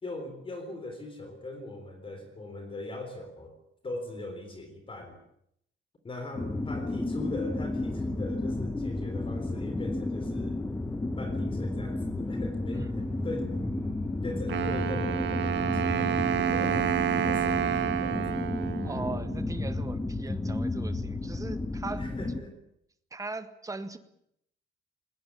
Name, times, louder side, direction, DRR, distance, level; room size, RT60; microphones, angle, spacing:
voice 1, 0.0-3.5 3.8-5.2 6.0-10.6 11.2-13.5 14.2-18.6 22.0-22.5, left 2 dB, 25° left, 6 dB, 3.8 m, -40 dB
sound 1, 6.4-22.4, left 2 dB, 10° left, 1.2 m, -32 dB
voice 2, 12.7-13.1 18.8-22.0 23.1-24.0, right 3 dB, 15° right, 10 dB, 1.7 m, -39 dB
Wind instrument woodwind instrument, 14.5-19.5, right 10 dB, 65° right, 1.4 m, -29 dB
20.5 x 20.0 x 8.6 m, 0.73 s
wide cardioid pair, 160°, 20 cm